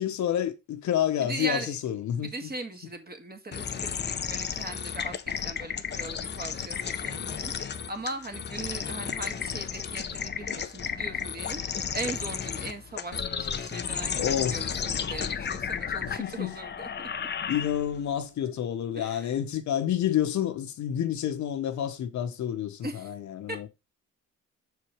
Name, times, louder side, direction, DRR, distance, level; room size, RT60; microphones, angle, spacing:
voice 1, 0.0-2.3 14.2-14.6 16.0-16.6 17.5-23.7, left 10 dB, 70° left, 1.2 m, -29 dB
voice 2, 1.2-1.8 2.2-17.3 18.4-18.5 19.0-19.4 22.8-23.1 23.5-23.7, right 2 dB, 30° right, 1.9 m, -39 dB
sound 1, 3.5-18.1, left 7 dB, 35° left, 0.7 m, -33 dB
5.9 x 4.7 x 5.0 m
cardioid pair, 90°, 30 cm